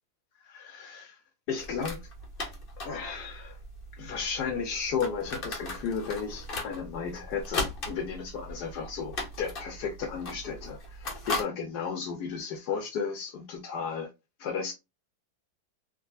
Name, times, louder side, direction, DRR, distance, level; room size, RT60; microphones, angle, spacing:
voice 1, 0.4-1.2 1.5-2.0 2.8-3.6 3.9-14.1 14.4-14.7, left 6 dB, 70° left, 1.0 m, -34 dB
sound 1, 1.6-11.4, left 2 dB, 50° left, 0.6 m, -38 dB
3.5 x 2.7 x 2.3 m
omnidirectional pair, 2.1 m